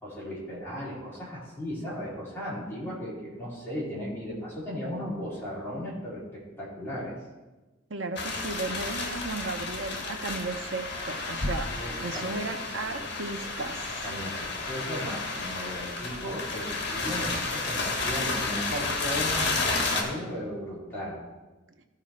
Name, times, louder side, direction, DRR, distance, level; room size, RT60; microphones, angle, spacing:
voice 1, 0.0-7.2 11.7-13.0 13.4-13.5 14.0-21.2, equal, 10° left, -8 dB, 3.3 m, -36 dB
voice 2, 7.9-11.7 12.0-13.9, right 3 dB, 80° right, 6 dB, 0.9 m, -35 dB
sound 1, 8.2-20.0, left 3 dB, 60° left, 1.5 m, -31 dB
14.5 x 5.1 x 4.3 m, 1.1 s
head